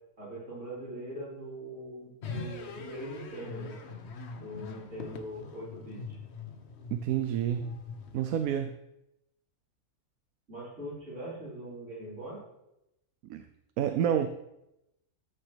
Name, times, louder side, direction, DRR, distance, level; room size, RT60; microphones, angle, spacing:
voice 1, 0.2-3.8 4.3-6.2 10.5-12.4, right 1 dB, 55° right, -7 dB, 4.4 m, -42 dB
sound 1, 2.2-8.6, left 4 dB, 55° left, 1.0 m, -43 dB
voice 2, 6.9-7.6 8.1-8.7 13.2-13.4 13.8-14.3, right 9 dB, 80° right, 8 dB, 1.0 m, -28 dB
13.5 x 6.7 x 3.3 m, 0.88 s
omnidirectional pair, 1.5 m